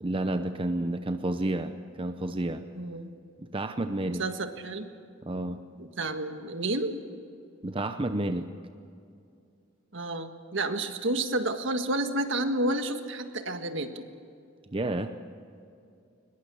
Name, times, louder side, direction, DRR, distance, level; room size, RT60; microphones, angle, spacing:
voice 1, 0.0-2.7 3.4-4.2 5.2-5.6 7.6-8.5 14.7-15.1, right 1 dB, 25° right, 8 dB, 0.8 m, -30 dB
voice 2, 2.8-3.1 4.2-4.9 5.8-6.9 9.9-14.0, right 2 dB, 65° right, 7 dB, 1.7 m, -30 dB
22.5 x 21.0 x 7.0 m, 2.5 s
head